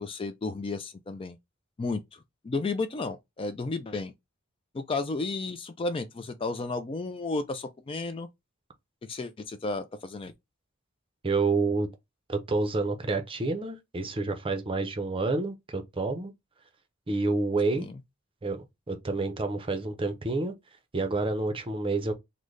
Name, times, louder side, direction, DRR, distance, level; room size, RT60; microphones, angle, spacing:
voice 1, 0.0-1.4 1.8-4.1 4.7-8.3 9.0-10.3 17.7-18.0, left 3 dB, 25° left, 0.3 m, -33 dB
voice 2, 11.2-11.9 12.3-16.3 17.1-17.9 18.4-20.5 20.9-22.1, right 3 dB, 25° right, 0.6 m, -28 dB
3.8 x 2.1 x 3.1 m
head